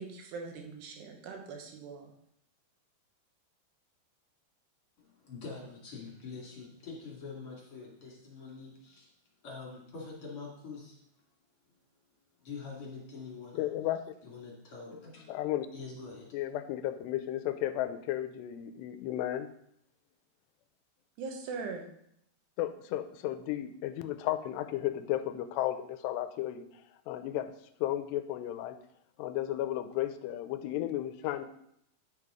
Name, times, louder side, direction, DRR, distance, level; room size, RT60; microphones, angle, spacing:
voice 1, 0.0-2.1 21.2-21.8, right 4 dB, 80° right, 2 dB, 3.4 m, -41 dB
voice 2, 5.0-9.1 9.4-11.0 12.4-13.7 14.2-15.4 15.7-16.3, left 4 dB, 40° left, -3 dB, 2.6 m, -45 dB
voice 3, 13.5-14.0 15.3-15.7 16.3-19.5 22.6-27.5 27.8-28.8 29.2-31.5, left 13 dB, 85° left, 10 dB, 2.7 m, -34 dB
10.5 x 6.7 x 5.0 m, 0.74 s
omnidirectional pair, 4.9 m